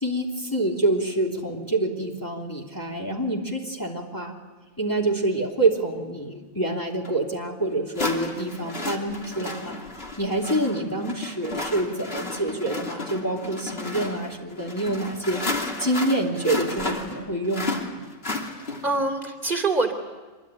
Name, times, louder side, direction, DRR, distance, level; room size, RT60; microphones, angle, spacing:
voice 1, 0.0-4.3 4.8-9.8 10.2-15.4 15.8-18.0, right 2 dB, 15° left, -2 dB, 3.0 m, -26 dB
sound 1, 7.0-7.1 7.9-19.0, left 2 dB, 45° left, 3.2 m, -33 dB
voice 2, 18.5-19.9, right 3 dB, 35° right, 3 dB, 3.2 m, -25 dB
25.5 x 23.0 x 10.0 m, 1.3 s
omnidirectional pair, 1.5 m